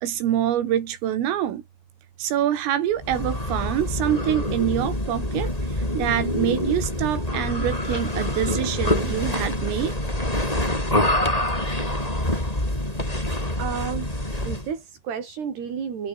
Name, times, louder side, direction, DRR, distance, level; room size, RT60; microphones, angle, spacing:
voice 1, 0.0-1.6 2.2-10.0, right 11 dB, 80° right, 5.2 m, -25 dB
sound 1, 3.0-14.7, left 1 dB, 5° left, 5.4 m, -26 dB
voice 2, 13.6-14.2 14.4-16.1, right 7 dB, 55° right, 6.2 m, -31 dB
omnidirectional pair, 5.8 m